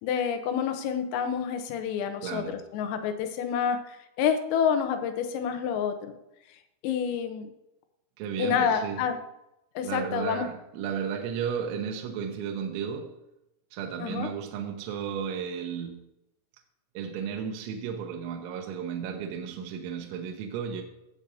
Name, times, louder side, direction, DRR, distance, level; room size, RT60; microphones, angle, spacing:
voice 1, 0.0-6.2 6.8-7.5 8.4-9.2 9.8-10.5 14.0-14.3, left 7 dB, 85° left, 7 dB, 3.7 m, -28 dB
voice 2, 2.2-2.6 8.2-9.0 9.8-13.1 13.7-16.0 16.9-20.8, right 7 dB, 75° right, 2 dB, 3.0 m, -34 dB
16.5 x 7.8 x 2.8 m, 0.88 s
omnidirectional pair, 6.0 m